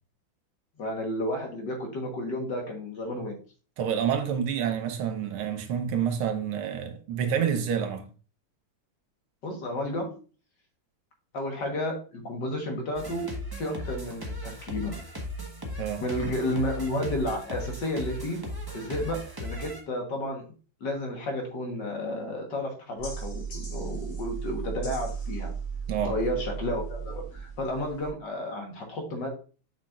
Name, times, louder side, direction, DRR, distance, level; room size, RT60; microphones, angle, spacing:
voice 1, 0.8-3.4 9.4-10.2 11.3-15.0 16.0-18.4 18.7-20.4 20.8-25.5 26.0-29.3, left 1 dB, 55° left, 2.0 m, -32 dB
voice 2, 3.8-8.0 15.8-16.0 25.9-26.2, right 8 dB, 80° right, 1.8 m, -28 dB
sound 1, 12.9-19.8, equal, 15° right, 0.9 m, -37 dB
sound 2, 23.0-28.1, right 6 dB, 75° left, 3.0 m, -36 dB
7.1 x 5.9 x 2.5 m
omnidirectional pair, 2.3 m